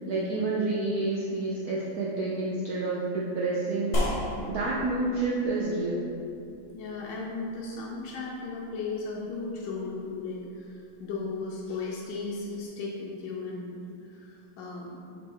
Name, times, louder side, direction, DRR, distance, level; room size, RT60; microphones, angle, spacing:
voice 1, 0.1-4.0 4.4-6.0, right 2 dB, 75° right, -4 dB, 0.8 m, -29 dB
sound 1, 3.9-12.7, equal, 50° left, 1.5 m, -38 dB
voice 2, 6.7-15.0, left 3 dB, 70° left, -4 dB, 1.3 m, -36 dB
6.9 x 4.0 x 3.8 m, 2.6 s
omnidirectional pair, 2.3 m